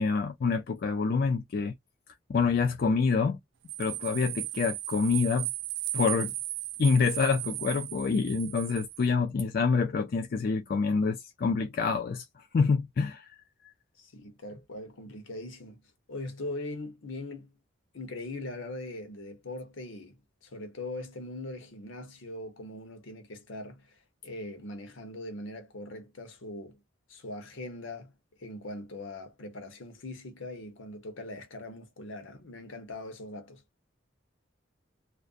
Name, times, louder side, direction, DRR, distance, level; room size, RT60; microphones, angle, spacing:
voice 1, 0.0-1.7 2.3-3.4 3.8-5.5 5.9-6.3 6.8-12.2 12.5-13.4, left 5 dB, 50° left, 0.3 m, -27 dB
sound 1, 3.7-9.1, right 15 dB, 65° right, 0.3 m, -36 dB
voice 2, 14.0-15.8 16.1-17.5 17.9-26.8 27.1-28.1 28.4-33.6, left 2 dB, 80° left, 0.8 m, -41 dB
2.5 x 2.1 x 2.4 m
head